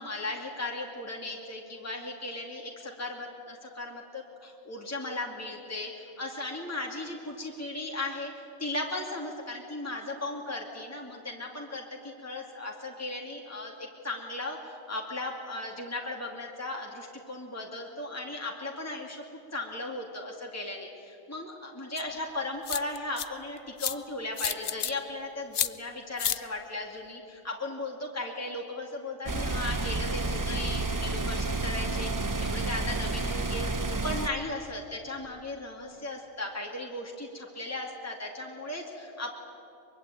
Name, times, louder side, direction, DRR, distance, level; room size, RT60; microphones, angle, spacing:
voice 1, 0.0-8.3 8.6-19.2 19.5-33.7 34.0-39.3, left 2 dB, 10° left, 0 dB, 2.5 m, -37 dB
sound 1, 22.0-22.1 22.7-23.3 23.8-24.0 24.4-24.9 25.5-25.7 26.2-26.4, left 9 dB, 50° left, 0.7 m, -29 dB
sound 2, 29.3-34.3, right 2 dB, 20° right, 0.5 m, -30 dB
23.5 x 23.0 x 9.1 m, 2.7 s
omnidirectional pair, 1.4 m